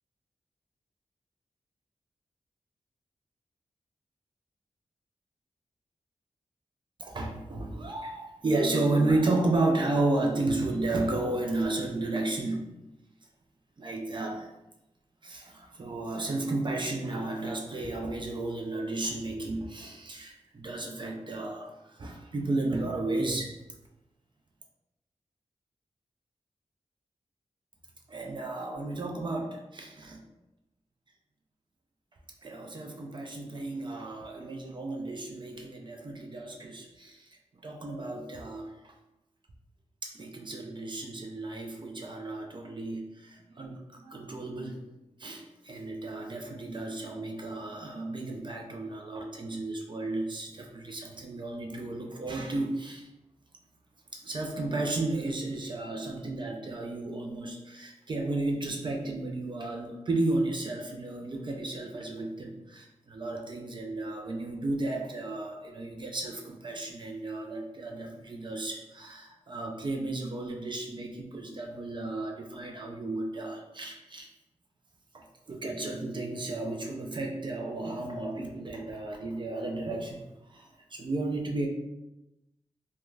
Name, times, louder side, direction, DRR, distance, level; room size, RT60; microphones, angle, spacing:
voice 1, 7.0-12.7 13.8-14.5 15.2-23.6 28.1-30.2 32.4-37.4 37.6-38.9 40.0-44.8 45.2-53.1 54.1-74.3 75.1-80.2 80.5-81.7, right 2 dB, 40° right, 1 dB, 0.4 m, -33 dB
2.3 x 2.1 x 3.1 m, 0.95 s
wide cardioid pair, 105°, 13 cm